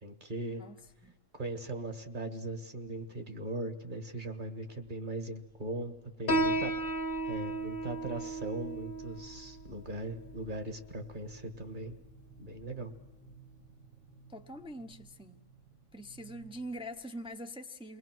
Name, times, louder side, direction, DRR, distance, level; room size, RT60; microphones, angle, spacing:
voice 1, 0.0-0.6 1.3-5.9 6.2-6.8 7.2-11.9 12.4-12.9, right 1 dB, 40° right, 7 dB, 1.7 m, -39 dB
voice 2, 0.6-1.2 14.3-15.4 15.9-18.0, equal, 5° right, 5 dB, 0.7 m, -44 dB
sound 1, 0.7-1.2 1.6-2.2 2.9-3.7 4.1-4.5 4.8-17.4, right 5 dB, 65° right, 3.2 m, -59 dB
Piano, 6.3-13.3, right 1 dB, 45° left, 1.1 m, -36 dB
28.5 x 21.0 x 6.1 m, 1.1 s
omnidirectional pair, 1.4 m